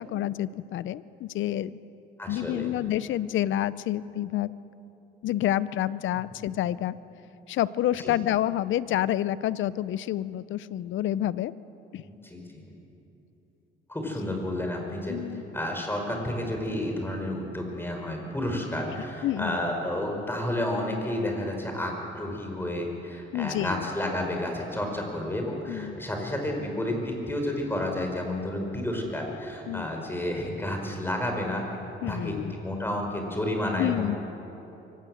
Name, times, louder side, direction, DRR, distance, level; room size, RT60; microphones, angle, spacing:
voice 1, 0.0-1.8 2.3-4.5 5.2-6.9 7.5-11.5 11.9-12.0 15.1-15.4 19.2-19.6 23.3-23.9 25.7-26.0 29.7-29.9 32.0-32.5 33.8-34.2, left 13 dB, 75° left, 18 dB, 0.6 m, -28 dB
voice 2, 2.2-2.7 8.0-8.1 12.0-12.6 13.9-31.6 32.1-34.2, left 1 dB, 10° left, 2 dB, 5.1 m, -31 dB
24.0 x 17.5 x 7.8 m, 2.9 s
cardioid pair, 90°, 20 cm